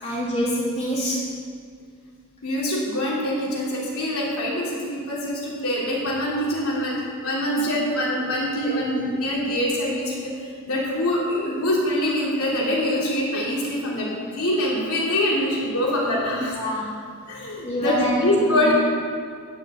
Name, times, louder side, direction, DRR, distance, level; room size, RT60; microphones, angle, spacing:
voice 1, 0.0-1.2 16.5-17.0 17.6-18.7, equal, 30° left, -6 dB, 3.3 m, -26 dB
voice 2, 2.4-6.9 7.2-16.6 17.3-18.7, left 1 dB, 70° left, -5 dB, 3.0 m, -24 dB
11.5 x 6.2 x 8.2 m, 2.1 s
head